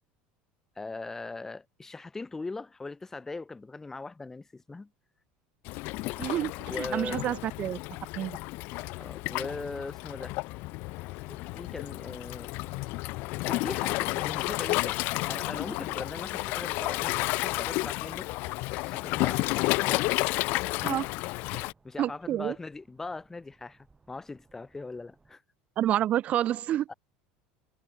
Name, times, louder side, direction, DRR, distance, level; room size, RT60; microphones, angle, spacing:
voice 1, 0.8-4.9 6.7-7.3 9.0-10.4 11.3-12.5 13.5-18.3 18.8-20.1 20.6-20.9 21.5-25.4 26.9-27.0, left 3 dB, 10° left, 0.9 m, -40 dB
Waves surf, 5.7-21.7, left 23 dB, 60° left, 1.4 m, -31 dB
voice 2, 6.2-7.8 8.2-8.4 20.8-21.0 22.0-22.5 25.8-26.9, right 12 dB, 40° right, 1.0 m, -28 dB
sound 1, 10.6-25.4, right 4 dB, 15° right, 6.4 m, -64 dB
supercardioid pair, 130°, 4 cm